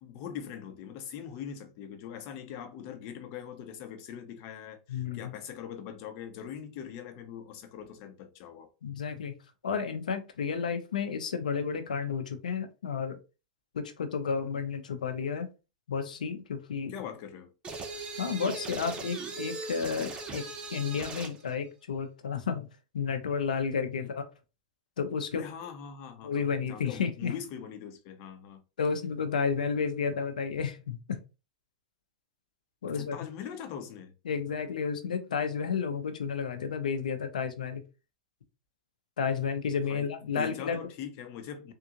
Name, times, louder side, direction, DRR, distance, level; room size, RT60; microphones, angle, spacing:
voice 1, 0.0-8.7 16.9-17.5 25.3-28.6 32.9-34.1 39.9-41.7, left 8 dB, 50° left, 0.9 m, -42 dB
voice 2, 4.9-5.3 8.8-9.3 9.6-13.2 13.7-15.5 15.9-16.9 18.2-22.7 22.9-24.3 25.0-25.5 26.2-27.3 28.8-31.2 32.8-33.2 34.2-37.8 39.2-40.8, left 6 dB, 90° left, 0.7 m, -32 dB
sound 1, 17.6-21.4, right 3 dB, 25° right, 0.9 m, -39 dB
3.7 x 2.4 x 3.0 m
hypercardioid pair, 115°, 4 cm